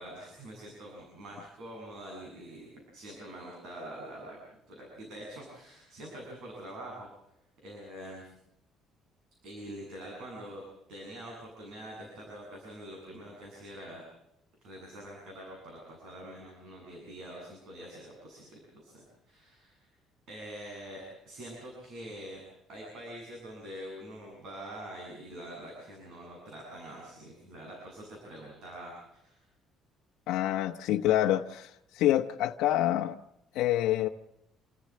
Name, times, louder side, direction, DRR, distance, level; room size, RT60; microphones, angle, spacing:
voice 1, 0.0-4.4 4.7-7.1 7.6-8.3 9.4-10.6 10.9-14.0 14.6-19.9 20.3-22.4 22.7-29.4, right 1 dB, 55° right, 8.0 m, -45 dB
voice 2, 30.3-33.2 33.5-34.1, left 13 dB, 80° left, 1.0 m, -27 dB
28.5 x 15.0 x 7.7 m
cardioid pair, 175°, 0 cm